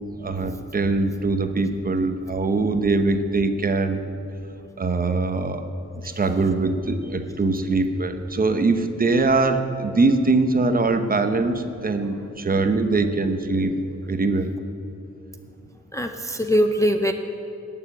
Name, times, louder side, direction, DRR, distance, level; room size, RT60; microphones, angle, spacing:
voice 1, 0.2-4.0 4.8-5.7 6.2-13.8 14.1-14.5, right 3 dB, 30° right, 7 dB, 0.8 m, -22 dB
voice 2, 15.9-17.1, equal, 10° left, 5 dB, 0.5 m, -22 dB
18.5 x 6.9 x 8.8 m, 2.8 s
wide cardioid pair, 175°, 29 cm